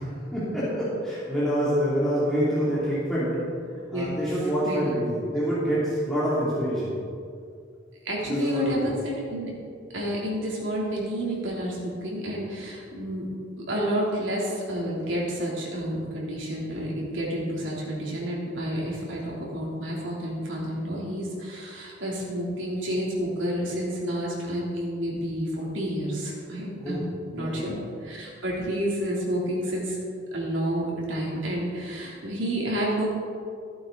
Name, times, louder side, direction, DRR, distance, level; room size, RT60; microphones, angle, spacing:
voice 1, 0.0-3.3 3.9-6.9 8.3-8.9 26.8-27.0 27.3-27.7, equal, ahead, -11 dB, 2.9 m, -26 dB
voice 2, 4.6-5.0 8.0-9.5 9.9-13.3 13.7-27.1 27.3-30.0 30.3-33.1, equal, 85° right, -4 dB, 3.2 m, -30 dB
15.5 x 8.6 x 4.0 m, 2.3 s
head